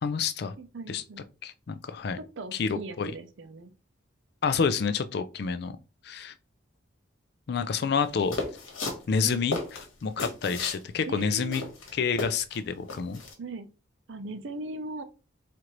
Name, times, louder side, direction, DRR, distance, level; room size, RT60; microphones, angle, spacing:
voice 1, 0.0-0.5 0.9-1.0 1.4-2.2 2.5-3.1 4.4-5.8 6.0-6.3 7.5-8.4 9.1-9.6 10.0-11.6 11.9-13.2, left 5 dB, 55° left, 0.3 m, -28 dB
voice 2, 0.6-1.2 2.2-3.7 9.2-9.4 11.1-11.7 13.4-13.7 14.1-15.0, right 3 dB, 70° right, 0.5 m, -39 dB
sound 1, 8.3-10.8 11.2-11.3 11.5-12.6 12.9-13.3, left 3 dB, 85° left, 1.2 m, -34 dB
4.4 x 2.5 x 3.0 m
head